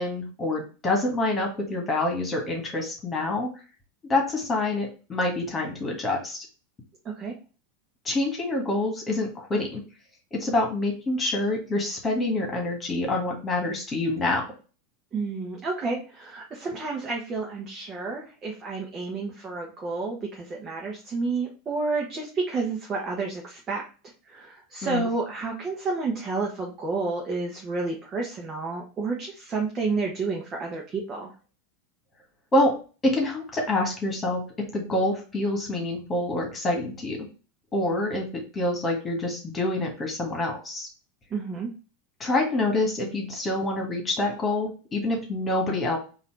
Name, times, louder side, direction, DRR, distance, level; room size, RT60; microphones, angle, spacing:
voice 1, 0.0-3.5 4.1-6.5 8.0-9.8 10.3-14.4 24.8-25.0 32.5-32.8 33.0-37.3 37.7-40.9 42.2-46.0, left 2 dB, 20° left, 1 dB, 1.8 m, -26 dB
voice 2, 15.1-23.8 24.3-31.3 41.3-41.7, right 3 dB, 30° right, -1 dB, 1.2 m, -30 dB
4.0 x 2.8 x 4.7 m, 0.35 s
figure-of-eight pair, 85°, 0 cm